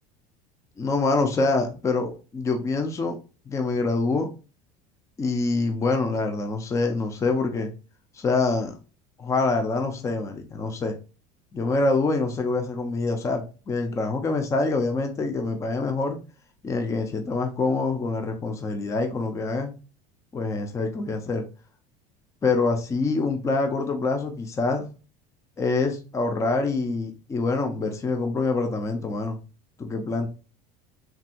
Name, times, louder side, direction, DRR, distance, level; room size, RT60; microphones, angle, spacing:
voice 1, 0.8-3.2 3.5-4.3 5.2-7.7 8.1-8.7 9.2-10.9 11.5-16.2 16.6-19.7 20.3-21.5 22.4-24.9 25.6-29.4 29.8-30.3, left 3 dB, 15° left, 5 dB, 0.5 m, -25 dB
3.4 x 2.7 x 2.3 m, 0.33 s
cardioid pair, 140°, 18 cm